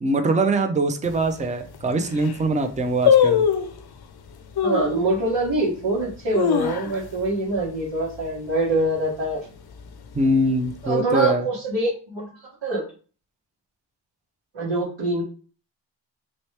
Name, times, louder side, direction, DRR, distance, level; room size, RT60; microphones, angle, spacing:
voice 1, 0.0-3.5 10.1-11.5, right 2 dB, 15° right, 6 dB, 0.4 m, -22 dB
sound 1, 1.0-1.1 1.7-1.8 2.1-2.4 3.1-3.8 4.6-5.0 5.5-5.6 6.1-7.2 7.5-7.6 8.0-8.3 8.7-9.1 9.7-10.5 10.7-10.8, left 8 dB, 55° left, 0.5 m, -21 dB
voice 2, 4.6-9.4 10.8-12.2 12.6-12.8 14.5-15.2, right 2 dB, 85° right, -8 dB, 1.5 m, -24 dB
3.1 x 3.0 x 3.2 m, 0.38 s
wide cardioid pair, 100°, 45 cm